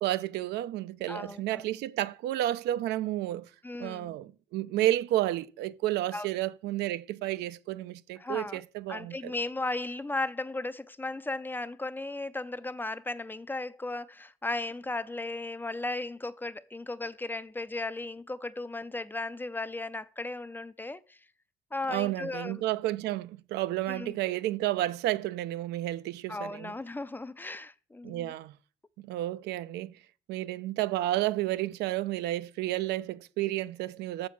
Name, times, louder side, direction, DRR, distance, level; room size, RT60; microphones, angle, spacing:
voice 1, 0.0-3.5 3.8-9.3 21.9-26.7 28.0-28.6 29.0-29.9 30.3-34.3, right 14 dB, 80° right, 0.5 m, -31 dB
voice 2, 1.1-1.6 3.6-4.2 6.1-6.3 8.2-8.6 8.9-21.2 21.7-22.6 23.9-24.1 26.3-28.3, left 2 dB, 10° left, 0.4 m, -36 dB
7.0 x 6.5 x 5.9 m
cardioid pair, 110°, 17 cm